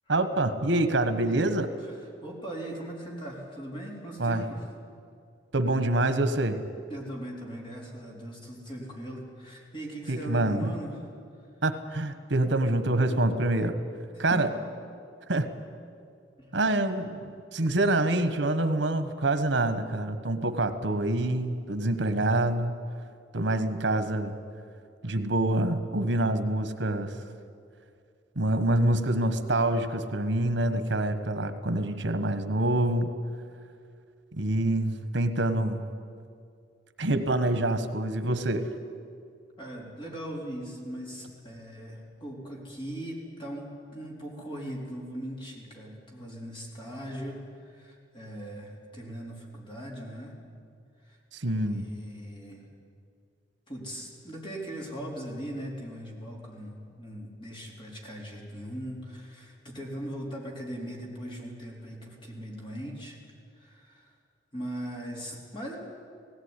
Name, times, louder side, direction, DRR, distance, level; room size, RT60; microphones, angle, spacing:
voice 1, 0.1-1.7 4.2-4.4 5.5-6.6 10.1-10.7 11.6-13.8 14.2-14.5 15.3-15.5 16.5-22.8 23.3-24.3 25.0-27.1 28.4-33.1 34.3-35.9 37.0-38.7 51.3-51.9, right 2 dB, 85° right, 10 dB, 1.3 m, -26 dB
voice 2, 2.2-4.6 6.9-11.0 14.1-14.5 16.4-16.5 39.6-50.4 51.0-51.2 51.6-52.6 53.7-63.2 63.5-64.1 64.5-65.8, right 1 dB, 25° left, -2 dB, 4.0 m, -39 dB
17.5 x 17.0 x 9.8 m, 2.4 s
head